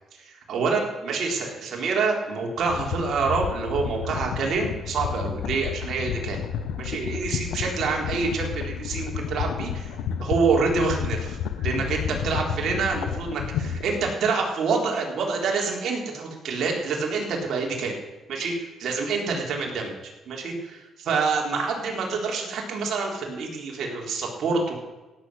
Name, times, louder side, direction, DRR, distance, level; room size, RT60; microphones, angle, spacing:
voice 1, 0.2-6.4 6.8-9.9 10.2-18.0 18.3-19.9 20.3-24.7, right 4 dB, 65° right, 0 dB, 3.9 m, -27 dB
sound 1, 2.6-14.1, left 8 dB, 85° left, 0.9 m, -31 dB
17.0 x 8.5 x 6.3 m, 1.1 s
cardioid pair, 90°, 0 cm